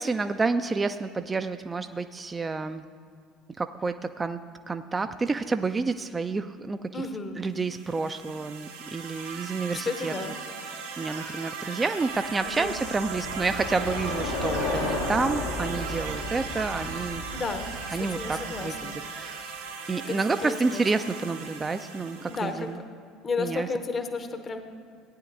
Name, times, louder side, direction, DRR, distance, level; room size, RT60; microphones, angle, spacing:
voice 1, 0.0-2.8 3.6-4.4 4.7-7.0 7.4-10.3 11.0-17.2 17.9-19.5 19.9-22.8 23.4-23.7, right 4 dB, 25° right, 8 dB, 0.4 m, -29 dB
voice 2, 6.9-7.4 9.7-10.3 12.4-12.8 17.3-19.0 19.9-20.8 22.1-22.8 23.2-24.6, left 4 dB, 35° left, 8 dB, 0.8 m, -33 dB
sound 1, 7.6-22.7, right 5 dB, 85° right, 2.2 m, -38 dB
Bicycle, 12.2-18.8, left 2 dB, 80° left, 1.1 m, -34 dB
17.0 x 9.3 x 2.6 m, 2.4 s
figure-of-eight pair, 65°, 0 cm